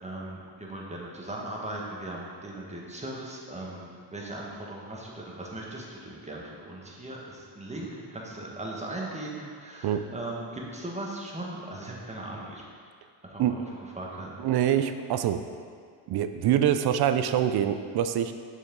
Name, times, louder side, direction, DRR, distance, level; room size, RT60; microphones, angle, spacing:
voice 1, 0.0-12.6 13.2-14.4, right 1 dB, 15° right, -3 dB, 1.5 m, -38 dB
voice 2, 14.4-15.5 16.1-18.3, right 10 dB, 50° right, 10 dB, 0.5 m, -25 dB
6.4 x 5.5 x 3.8 m, 2.1 s
supercardioid pair, 70°, 49 cm